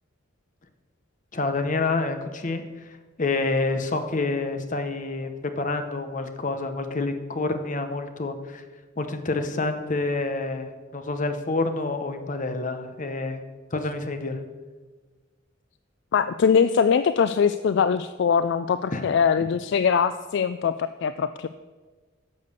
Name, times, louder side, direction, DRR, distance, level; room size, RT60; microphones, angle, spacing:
voice 1, 1.3-8.6 9.0-14.4 18.9-19.1, left 3 dB, 40° left, 7 dB, 0.9 m, -28 dB
voice 2, 16.1-21.5, left 6 dB, 60° left, 12 dB, 0.3 m, -22 dB
10.5 x 6.8 x 6.8 m, 1.4 s
head